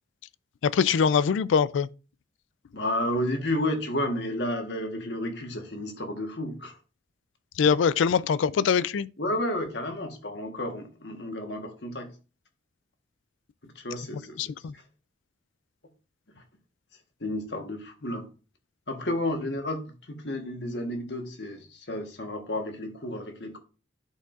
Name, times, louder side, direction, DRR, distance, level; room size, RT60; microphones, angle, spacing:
voice 1, 0.6-1.9 7.6-9.1 14.4-14.7, left 6 dB, 90° left, 0.4 m, -23 dB
voice 2, 2.7-6.8 9.2-12.1 13.6-14.5 17.2-18.3 18.9-23.6, left 1 dB, 65° left, 1.3 m, -31 dB
11.0 x 4.5 x 2.5 m
head